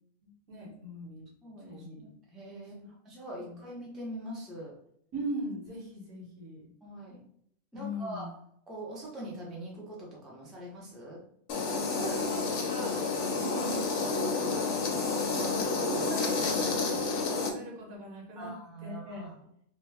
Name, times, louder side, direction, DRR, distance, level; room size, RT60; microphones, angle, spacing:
voice 1, 0.5-1.2 1.7-2.0 2.8-2.9 3.4-3.6 5.1-6.6 7.7-8.3 11.8-14.9 15.3-19.2, equal, 80° right, -2 dB, 1.5 m, -40 dB
voice 2, 1.4-2.8 3.0-4.7 6.8-7.2 7.7-8.3 8.7-11.2 16.2-16.8 18.4-19.3, right 1 dB, ahead, -4 dB, 0.4 m, -43 dB
sound 1, 11.5-17.5, left 4 dB, 65° left, 0.8 m, -30 dB
3.1 x 2.1 x 3.3 m, 0.69 s
omnidirectional pair, 1.5 m